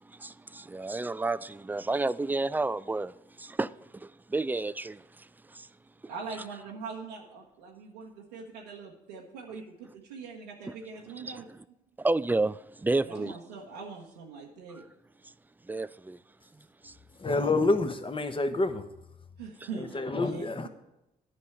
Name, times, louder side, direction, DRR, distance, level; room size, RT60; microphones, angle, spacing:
voice 1, 0.0-5.7 11.2-11.6 12.0-13.4 14.7-14.8 15.6-16.2 16.8-16.9 19.6-19.7, right 2 dB, 10° right, 0.4 m, -31 dB
voice 2, 6.1-11.5 13.0-14.8 19.4-20.5, right 5 dB, 85° right, 1.0 m, -42 dB
voice 3, 17.2-18.8 19.8-20.7, left 2 dB, 25° left, 1.2 m, -28 dB
9.9 x 5.4 x 8.4 m
hypercardioid pair, 40°, 19 cm